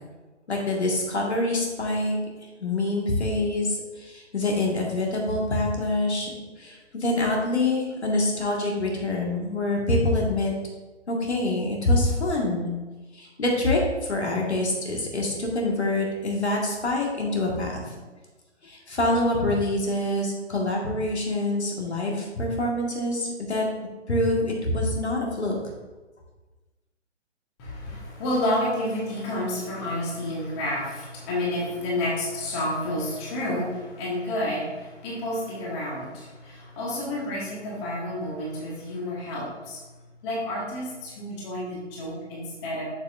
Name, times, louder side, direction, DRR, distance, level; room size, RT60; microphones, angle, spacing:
voice 1, 0.5-2.2 2.6-10.5 11.1-12.7 13.1-17.9 18.6-23.7 24.1-25.6, left 2 dB, 65° left, -1 dB, 1.9 m, -25 dB
voice 2, 27.6-39.8 40.2-42.8, left 1 dB, 25° left, -5 dB, 1.5 m, -30 dB
8.0 x 6.8 x 2.6 m, 1.2 s
figure-of-eight pair, 130°, 36 cm